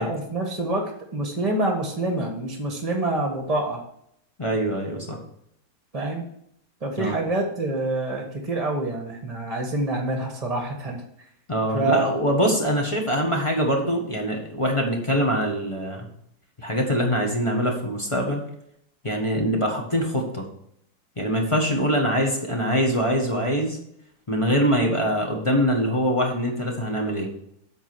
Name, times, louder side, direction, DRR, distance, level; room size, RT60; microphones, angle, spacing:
voice 1, 0.0-3.8 5.9-6.2 6.8-11.0 11.7-12.1, right 2 dB, 25° right, 2 dB, 1.3 m, -26 dB
voice 2, 4.4-5.2 7.0-7.2 11.5-16.1 16.6-18.4 19.0-20.5 21.2-23.8 24.3-27.3, equal, 20° left, 0 dB, 1.2 m, -23 dB
8.2 x 4.8 x 6.0 m, 0.73 s
omnidirectional pair, 1.8 m